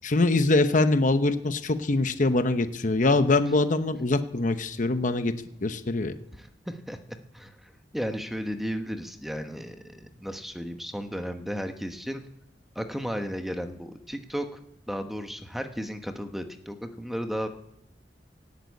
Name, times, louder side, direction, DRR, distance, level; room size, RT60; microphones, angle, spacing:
voice 1, 0.0-5.3 5.6-6.1, left 2 dB, 45° left, 10 dB, 0.9 m, -23 dB
voice 2, 6.3-7.0 7.3-12.2 12.7-14.6 14.9-17.5, equal, ahead, 6 dB, 1.1 m, -34 dB
17.5 x 8.2 x 8.4 m, 0.82 s
head